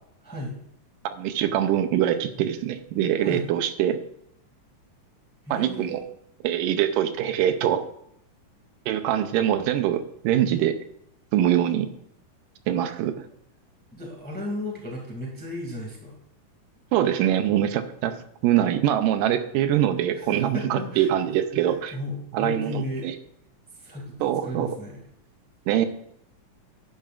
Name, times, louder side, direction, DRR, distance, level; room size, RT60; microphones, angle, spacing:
voice 1, 0.2-0.5 3.2-3.4 5.4-6.0 13.9-16.2 20.1-21.1 21.6-23.1 23.8-25.0, left 1 dB, 5° left, -1 dB, 1.4 m, -35 dB
voice 2, 1.2-4.0 5.5-6.0 6.4-7.8 8.9-10.8 11.3-11.9 12.7-13.2 16.9-18.1 18.4-22.0 22.3-23.1 24.2-24.7 25.7-25.9, right 11 dB, 85° right, 10 dB, 2.3 m, -23 dB
11.0 x 10.5 x 2.5 m, 0.74 s
omnidirectional pair, 3.8 m